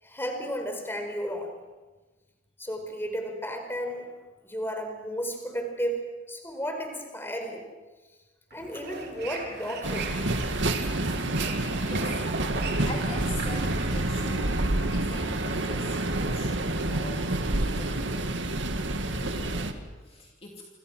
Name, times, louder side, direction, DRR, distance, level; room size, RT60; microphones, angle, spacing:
voice 1, 0.0-1.5 2.6-4.1 4.4-6.0 6.3-7.6 8.5-10.1, equal, 10° left, 4 dB, 4.7 m, -33 dB
sound 1, 8.5-13.9, right 4 dB, 60° right, 4.3 m, -39 dB
sound 2, 9.8-19.7, right 2 dB, 80° right, 2.2 m, -28 dB
voice 2, 11.8-12.2 12.6-18.4 19.0-20.7, left 2 dB, 30° left, 0 dB, 2.9 m, -43 dB
28.5 x 26.5 x 6.3 m, 1.2 s
head